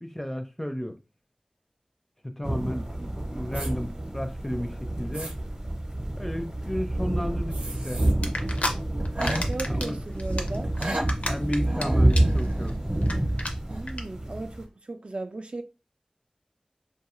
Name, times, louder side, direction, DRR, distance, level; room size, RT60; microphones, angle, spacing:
voice 1, 0.0-1.0 2.2-5.3 6.2-7.6 7.8-8.0 9.7-10.0 11.2-12.8, equal, 10° left, 0.4 m, -33 dB
sound 1, 2.4-14.7, right 1 dB, 30° right, 0.7 m, -28 dB
sound 2, 3.5-3.7 4.4-4.5 5.0-5.3 7.5-8.1 8.5-8.6 9.0-9.4 10.6-11.1 11.7-13.4 13.7-13.9, right 1 dB, 85° right, 0.7 m, -34 dB
sound 3, 8.2-8.7 9.1-9.9 10.2-11.8 12.1-12.4 12.7-12.8 13.0-13.1 13.4-13.5 13.9-14.0, left 1 dB, 70° left, 0.5 m, -30 dB
voice 2, 9.5-10.7 13.7-15.6, right 2 dB, 55° right, 0.3 m, -36 dB
2.6 x 2.4 x 3.0 m
wide cardioid pair, 50°, 2 cm